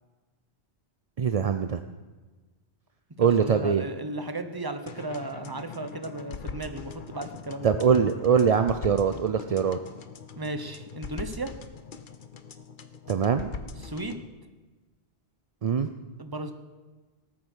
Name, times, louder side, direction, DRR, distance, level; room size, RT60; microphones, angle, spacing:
voice 1, 1.2-1.8 3.2-3.9 7.6-9.8 13.1-13.5 15.6-15.9, right 7 dB, 45° right, 9 dB, 0.5 m, -23 dB
voice 2, 3.2-7.7 10.4-11.5 13.8-14.2 16.2-16.5, right 2 dB, 20° right, 7 dB, 1.0 m, -35 dB
sound 1, 4.9-14.3, left 5 dB, 50° left, 0.9 m, -42 dB
19.0 x 8.6 x 6.3 m, 1.3 s
omnidirectional pair, 1.2 m